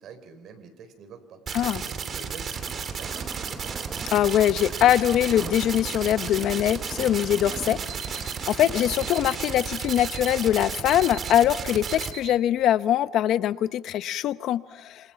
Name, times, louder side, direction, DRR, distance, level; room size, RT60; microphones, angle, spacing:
voice 1, 0.0-1.4 1.9-3.9, right 5 dB, 50° right, 9 dB, 4.5 m, -46 dB
sound 1, 1.5-12.1, right 6 dB, 35° right, 2.7 m, -33 dB
Thunder / Rain, 2.5-9.4, right 3 dB, 15° right, 1.0 m, -42 dB
voice 2, 4.1-15.1, left 11 dB, 55° left, 13 dB, 0.9 m, -23 dB
Alarm, 7.7-12.6, right 12 dB, 70° right, 2.4 m, -44 dB
28.0 x 27.0 x 5.9 m, 1.2 s
cardioid pair, 150°, 0 cm